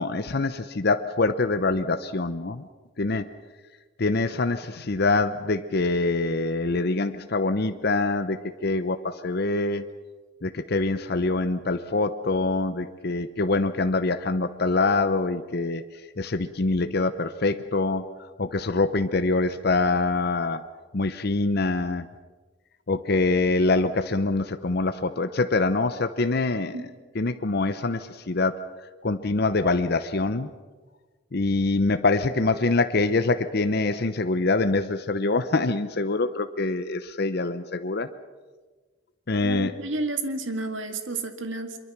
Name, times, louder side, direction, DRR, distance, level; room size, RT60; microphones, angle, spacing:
voice 1, 0.0-2.6 3.0-3.3 4.0-9.8 10.4-15.8 16.2-18.0 18.4-20.6 20.9-22.1 22.9-26.9 27.1-28.6 29.0-30.5 31.3-38.1 39.3-39.8, left 3 dB, 55° left, 10 dB, 0.8 m, -25 dB
voice 2, 39.4-41.8, right 2 dB, 80° right, 7 dB, 2.0 m, -31 dB
24.5 x 22.5 x 6.0 m, 1.3 s
head